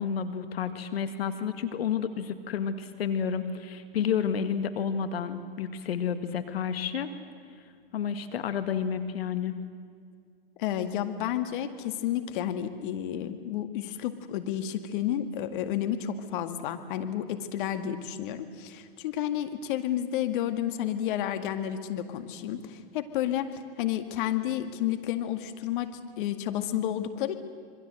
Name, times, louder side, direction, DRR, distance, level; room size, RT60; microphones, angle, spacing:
voice 1, 0.0-7.1 7.9-9.6, left 7 dB, 70° left, 10 dB, 2.0 m, -30 dB
voice 2, 10.6-27.3, left 11 dB, 55° left, 8 dB, 2.0 m, -31 dB
27.0 x 23.5 x 7.9 m, 2.2 s
hypercardioid pair, 120°, 31 cm